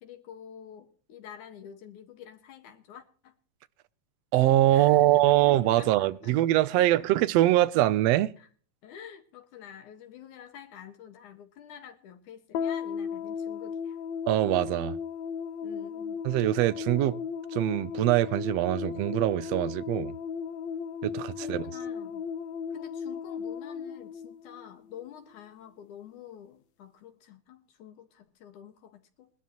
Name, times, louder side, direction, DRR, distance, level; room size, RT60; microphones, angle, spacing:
voice 1, 0.0-3.4 4.7-6.3 6.8-6.9 7.3-7.4 8.4-8.5 8.8-14.0 15.6-16.2 21.4-22.2 22.7-29.3, left 9 dB, 90° left, 3.2 m, -48 dB
voice 2, 4.3-8.3 14.3-15.0 16.2-17.2 17.5-20.1 21.0-21.7, right 15 dB, 70° right, 1.7 m, -23 dB
sound 1, 12.5-25.1, left 7 dB, 75° left, 1.8 m, -36 dB
21.5 x 12.5 x 3.0 m
omnidirectional pair, 3.4 m